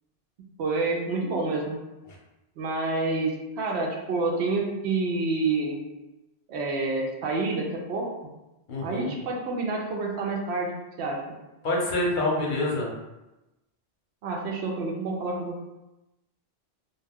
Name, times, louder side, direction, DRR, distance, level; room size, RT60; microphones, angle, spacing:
voice 1, 0.6-1.8 2.6-5.8 6.5-8.1 8.8-11.3 14.2-15.6, right 3 dB, 80° right, -1 dB, 0.8 m, -28 dB
voice 2, 8.7-9.1 11.6-12.9, left 2 dB, 55° left, -3 dB, 0.8 m, -26 dB
2.3 x 2.2 x 3.4 m, 0.98 s
omnidirectional pair, 1.1 m